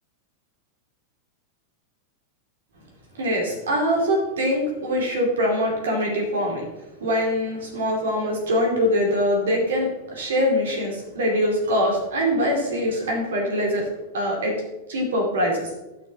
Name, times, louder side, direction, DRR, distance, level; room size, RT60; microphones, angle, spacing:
voice 1, 3.1-6.6 7.0-13.8 14.1-14.5 14.9-15.7, equal, 65° right, -1 dB, 2.5 m, -23 dB
13.0 x 6.2 x 2.9 m, 0.99 s
figure-of-eight pair, 90°, 0 cm